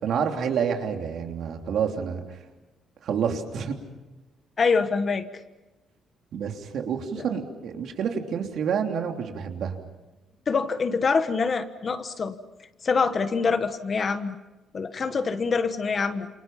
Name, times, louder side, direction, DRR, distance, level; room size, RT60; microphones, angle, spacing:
voice 1, 0.0-2.4 3.0-3.8 6.3-9.8, right 7 dB, 55° right, 4 dB, 3.1 m, -28 dB
voice 2, 4.6-5.3 7.2-7.3 10.5-12.3 12.8-14.4 14.7-16.3, left 5 dB, 30° left, 10 dB, 1.2 m, -25 dB
29.5 x 28.0 x 5.8 m, 1.1 s
cardioid pair, 165°, 0 cm